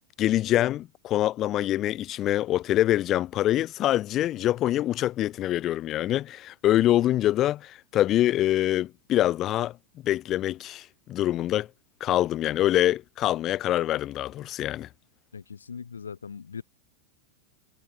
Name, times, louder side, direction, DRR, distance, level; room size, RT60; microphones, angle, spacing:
voice 1, 0.2-9.7 10.0-11.7 12.0-14.9, left 13 dB, 35° left, 0.4 m, -25 dB
voice 2, 15.3-16.6, left 6 dB, 70° left, 1.3 m, -40 dB
figure-of-eight pair, 90°, 0 cm